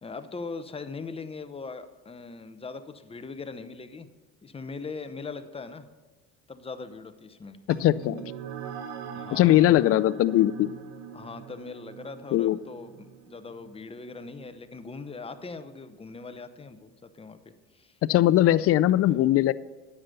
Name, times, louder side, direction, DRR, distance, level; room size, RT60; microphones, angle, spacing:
voice 1, 0.0-4.1 4.4-5.9 6.5-7.6 9.1-9.6 11.1-18.0, left 4 dB, 20° left, 10 dB, 0.8 m, -40 dB
sound 1, 7.7-16.5, right 6 dB, 70° right, 1.2 m, -43 dB
voice 2, 7.8-8.2 9.3-10.7 12.3-12.6 18.1-19.5, left 14 dB, 50° left, 17 dB, 0.4 m, -20 dB
9.6 x 6.9 x 6.7 m, 1.2 s
supercardioid pair, 95°, 31 cm